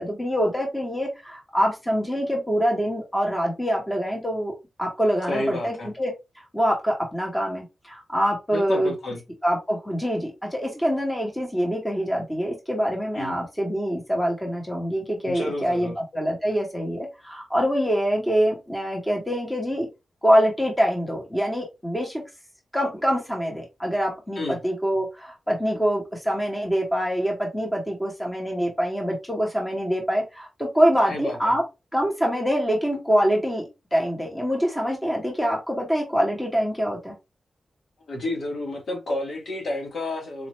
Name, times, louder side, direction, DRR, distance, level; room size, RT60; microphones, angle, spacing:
voice 1, 0.0-4.5 4.8-6.1 6.5-8.9 9.4-19.9 20.2-22.2 22.7-31.6 31.9-37.1, equal, 10° left, 1.4 m, -25 dB
voice 2, 5.3-5.9 8.5-9.2 13.2-13.4 15.2-15.9 24.4-24.6 31.1-31.6 38.1-40.5, left 1 dB, 70° left, 1.8 m, -30 dB
4.2 x 2.9 x 3.1 m
wide cardioid pair, 165°, 0 cm